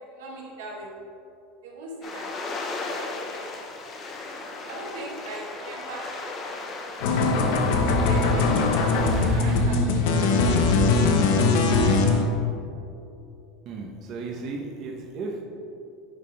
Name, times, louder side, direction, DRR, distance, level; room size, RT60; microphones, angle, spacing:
voice 1, 0.1-0.9 1.6-2.3 2.9-3.0 4.1-6.6 7.4-8.9 9.3-10.7 11.1-11.3, right 2 dB, 90° right, -1 dB, 1.2 m, -40 dB
sound 1, 2.0-9.7, left 3 dB, 30° left, 0.7 m, -36 dB
sound 2, 7.0-12.2, left 3 dB, 75° left, 0.7 m, -21 dB
voice 2, 13.7-15.4, right 3 dB, 45° right, -1 dB, 0.8 m, -34 dB
10.5 x 3.7 x 3.3 m, 2.7 s
supercardioid pair, 140°, 0 cm